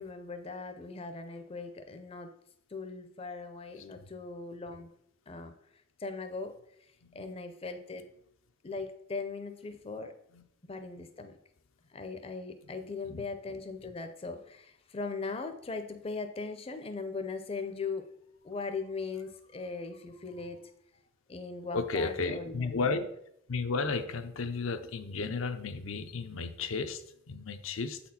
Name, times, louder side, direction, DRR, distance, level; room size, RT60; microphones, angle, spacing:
voice 1, 0.0-2.3 2.7-4.9 5.3-5.5 6.0-6.5 7.1-8.1 8.6-10.1 10.6-11.4 11.9-18.1 18.4-20.7 21.3-22.9, left 4 dB, 30° left, 7 dB, 0.5 m, -39 dB
voice 2, 12.8-13.2 21.7-23.1 23.5-28.0, left 4 dB, 85° left, 8 dB, 0.6 m, -34 dB
7.8 x 4.2 x 4.2 m, 0.76 s
head